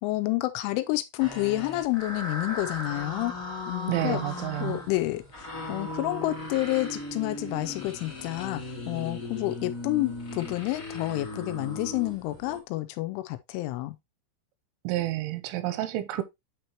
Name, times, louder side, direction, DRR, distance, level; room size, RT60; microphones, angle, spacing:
voice 1, 0.0-3.3 3.7-4.2 4.6-14.0, left 18 dB, 85° left, 3.1 m, -29 dB
sound 1, 1.2-12.6, left 2 dB, 35° left, 1.3 m, -37 dB
voice 2, 3.9-4.8 14.8-16.2, right 15 dB, 85° right, 3.1 m, -29 dB
8.9 x 4.6 x 2.9 m
omnidirectional pair, 5.6 m